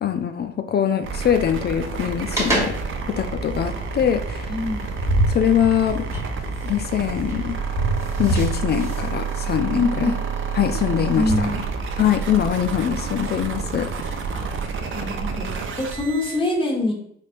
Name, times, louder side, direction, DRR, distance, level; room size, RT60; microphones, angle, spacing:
voice 1, 0.0-2.7 3.1-4.6 5.3-6.1 6.6-7.6 8.2-10.1 10.5-11.5 12.0-14.3, left 9 dB, 35° left, 8 dB, 0.4 m, -23 dB
sound 1, 1.0-16.4, right 5 dB, 45° right, 0.6 m, -29 dB
sound 2, 1.7-11.4, right 1 dB, 10° right, 1.4 m, -27 dB
Engine, 2.7-7.9, equal, 80° right, 1.2 m, -41 dB
voice 2, 4.5-4.9 9.7-10.1 11.2-11.6 14.3-14.4 14.9-16.9, left 2 dB, 15° left, 0 dB, 1.2 m, -24 dB
4.2 x 3.2 x 2.5 m, 0.69 s
hypercardioid pair, 60°, 29 cm